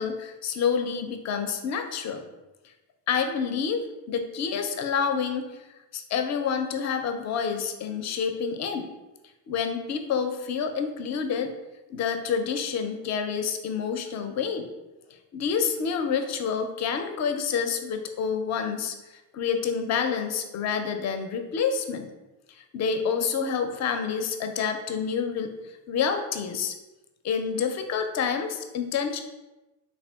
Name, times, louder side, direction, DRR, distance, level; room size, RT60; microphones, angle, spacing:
voice 1, 0.0-2.2 3.1-3.8 4.1-5.5 5.9-8.9 9.5-11.5 11.9-14.7 15.3-18.9 19.3-22.1 22.5-25.5 25.9-26.7 27.2-29.2, left 6 dB, 35° left, 6 dB, 0.4 m, -28 dB
3.4 x 2.3 x 2.2 m, 1.0 s
hypercardioid pair, 50°, 49 cm